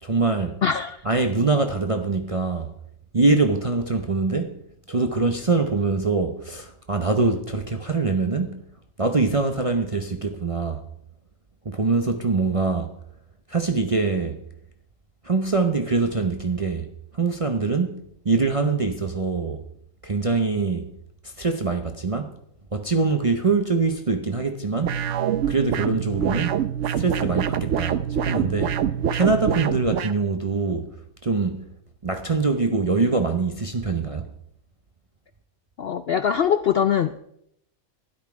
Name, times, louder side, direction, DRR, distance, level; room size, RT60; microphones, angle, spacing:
voice 1, 0.0-0.6 1.0-2.7 3.1-4.6 4.9-8.6 9.0-10.9 11.6-13.0 13.5-14.4 15.2-16.9 17.1-19.6 20.0-20.9 21.2-22.4 22.7-25.0 25.5-26.6 27.0-28.8 29.1-31.0 31.2-31.7 32.0-34.3, right 3 dB, 35° right, 0.5 m, -24 dB
voice 2, 0.6-1.0 35.8-37.2, left 8 dB, 65° left, 0.6 m, -22 dB
sound 1, 24.8-30.1, right 9 dB, 65° right, 0.9 m, -25 dB
12.5 x 10.5 x 4.8 m
omnidirectional pair, 1.5 m